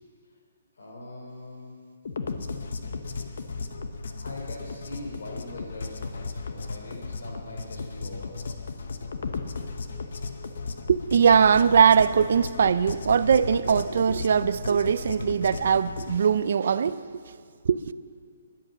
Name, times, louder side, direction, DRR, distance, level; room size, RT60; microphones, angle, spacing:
voice 1, 0.8-1.8 4.2-8.3, left 1 dB, 80° left, 3.6 m, -42 dB
sound 1, 2.0-16.2, left 4 dB, 60° left, 1.0 m, -35 dB
voice 2, 10.9-17.0 17.6-17.8, right 7 dB, 50° right, 0.4 m, -21 dB
12.5 x 11.0 x 7.4 m
hypercardioid pair, 175°, 0 cm